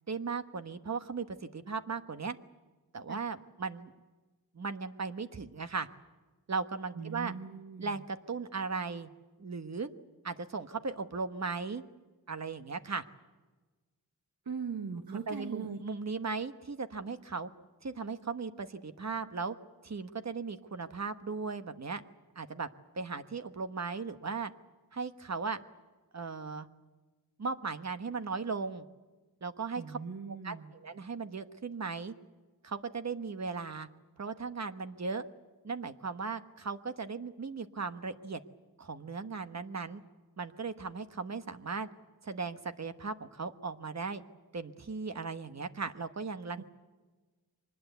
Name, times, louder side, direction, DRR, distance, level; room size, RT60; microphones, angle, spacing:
voice 1, 0.1-2.4 2.9-3.9 4.5-5.9 6.5-7.3 7.8-9.1 9.4-9.9 10.2-11.8 12.3-13.0 15.1-17.5 17.8-19.6 19.8-22.0 22.3-22.7 22.9-24.5 24.9-25.6 26.1-26.7 27.4-28.8 29.4-30.0 30.4-32.1 32.6-33.9 34.2-35.3 35.6-38.4 38.8-40.0 40.4-41.9 42.2-44.2 44.5-46.6, right 4 dB, 45° right, 9 dB, 1.2 m, -37 dB
voice 2, 6.9-8.0 14.4-15.8 29.8-30.7 46.6-46.7, right 5 dB, 70° right, 6 dB, 1.5 m, -40 dB
24.5 x 20.0 x 8.1 m, 1.3 s
wide cardioid pair, 100°, 36 cm